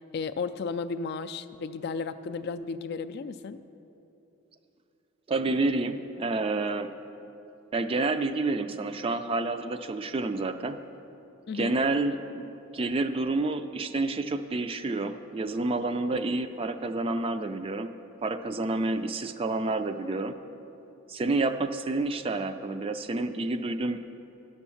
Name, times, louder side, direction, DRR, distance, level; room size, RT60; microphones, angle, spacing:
voice 1, 0.1-3.6 11.5-11.7, left 4 dB, 50° left, 11 dB, 0.3 m, -34 dB
voice 2, 5.3-6.9 7.7-10.8 11.5-17.9 18.2-20.4 21.1-24.0, right 2 dB, 25° right, 9 dB, 0.3 m, -29 dB
10.5 x 7.1 x 7.0 m, 2.9 s
head